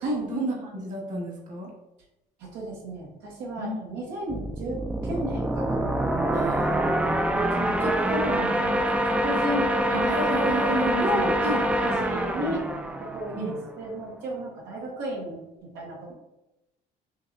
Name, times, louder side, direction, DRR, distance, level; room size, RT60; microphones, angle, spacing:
voice 1, 0.3-1.7 3.6-3.8 6.3-6.8 9.9-11.3 12.4-12.6 13.4-13.6, right 2 dB, 50° right, -2 dB, 1.4 m, -31 dB
voice 2, 2.4-5.8 6.1-6.5 7.5-10.2 11.0-12.6 13.1-16.0, equal, 90° right, -3 dB, 1.2 m, -33 dB
sound 1, 4.3-13.8, right 1 dB, 5° right, 0.3 m, -25 dB
5.7 x 2.9 x 2.6 m, 0.94 s
cardioid pair, 110°, 17 cm